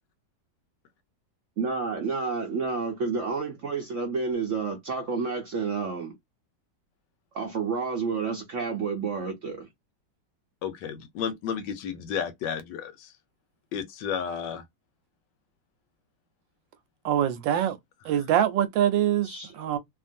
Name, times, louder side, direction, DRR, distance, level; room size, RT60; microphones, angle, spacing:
voice 1, 1.6-6.2 7.3-9.7 19.2-19.5, right 5 dB, 65° right, 0.7 m, -30 dB
voice 2, 10.6-13.1 13.7-14.6, left 7 dB, 75° left, 1.2 m, -32 dB
voice 3, 17.0-17.8 18.0-19.3 19.6-19.8, right 10 dB, 80° right, 1.3 m, -24 dB
2.8 x 2.5 x 2.5 m
omnidirectional pair, 2.0 m